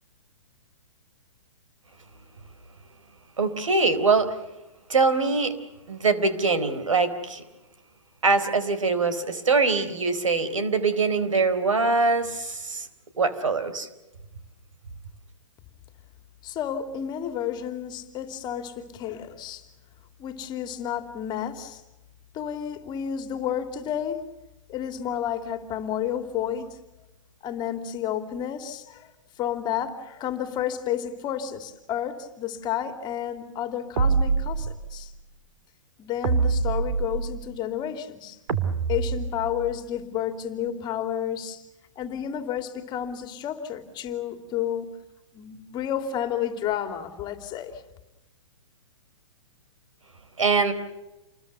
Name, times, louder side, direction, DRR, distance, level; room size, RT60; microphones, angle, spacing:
voice 1, 3.4-4.3 4.9-5.5 5.9-7.4 8.2-12.9 13.2-13.9 50.4-50.7, right 4 dB, 85° right, 10 dB, 4.0 m, -23 dB
voice 2, 16.4-19.6 20.2-21.8 22.3-24.2 24.7-26.7 27.4-29.1 29.4-35.1 36.0-38.4 38.9-41.6 42.0-44.9 45.3-47.8, left 9 dB, 25° left, 7 dB, 2.9 m, -31 dB
sound 1, 34.0-35.0 36.2-37.5 38.5-39.7, right 4 dB, 65° right, 2.9 m, -25 dB
29.0 x 21.5 x 6.9 m, 0.99 s
hypercardioid pair, 125°, 16 cm